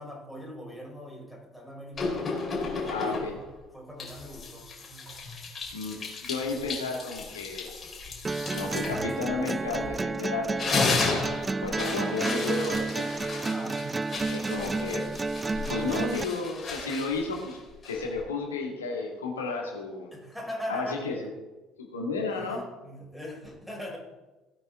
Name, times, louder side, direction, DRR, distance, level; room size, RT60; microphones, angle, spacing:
voice 1, 0.0-2.3 2.8-3.4 3.7-5.1 13.4-13.9 20.1-21.0 22.3-24.0, equal, 5° left, -2 dB, 4.7 m, -41 dB
sound 1, 2.0-3.5 4.0-10.1 10.4-18.2, left 4 dB, 35° left, 3.9 m, -34 dB
voice 2, 2.9-3.3 5.7-6.0 6.2-7.7 8.5-10.7 11.6-13.1 14.3-15.1 15.7-17.6 17.8-20.1 20.7-21.3 21.8-22.6, left 3 dB, 75° left, 1 dB, 2.1 m, -32 dB
sound 2, 8.2-16.2, right 3 dB, 20° right, 0.3 m, -31 dB
17.5 x 8.9 x 3.7 m, 1.1 s
figure-of-eight pair, 55°, 0 cm